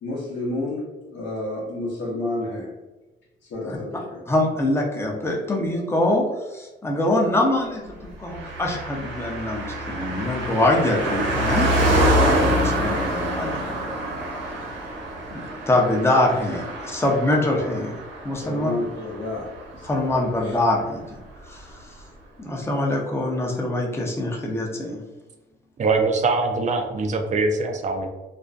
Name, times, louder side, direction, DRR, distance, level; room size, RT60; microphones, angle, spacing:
voice 1, 0.0-2.7 3.5-4.2 18.4-19.9 20.4-20.6, left 2 dB, 65° left, -7 dB, 0.7 m, -30 dB
voice 2, 4.3-11.7 12.5-13.6 15.3-15.4 15.7-18.0 18.2-18.7 19.8-21.2 21.5-22.0 22.4-25.0, left 1 dB, 10° left, -1 dB, 0.6 m, -24 dB
Car passing by, 8.3-20.1 20.4-20.5, right 1 dB, 65° right, 0.9 m, -26 dB
voice 3, 25.8-28.1, right 3 dB, 40° right, 5 dB, 0.4 m, -22 dB
2.5 x 2.1 x 2.4 m, 1.1 s
cardioid pair, 90°, 20 cm